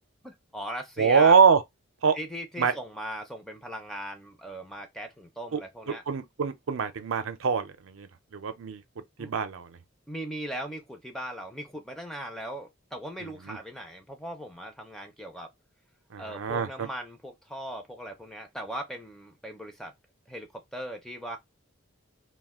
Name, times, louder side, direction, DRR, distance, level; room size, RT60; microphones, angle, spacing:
voice 1, 0.2-1.3 2.1-6.0 9.2-9.3 10.1-15.5 16.2-19.9 20.3-21.4, right 1 dB, ahead, 0.4 m, -38 dB
voice 2, 1.0-1.6 2.0-2.2 2.6-2.7 5.5-5.6 5.9-8.8 9.2-9.8 13.2-13.6 16.1-16.9, right 6 dB, 85° right, 0.5 m, -24 dB
2.4 x 2.2 x 3.5 m
head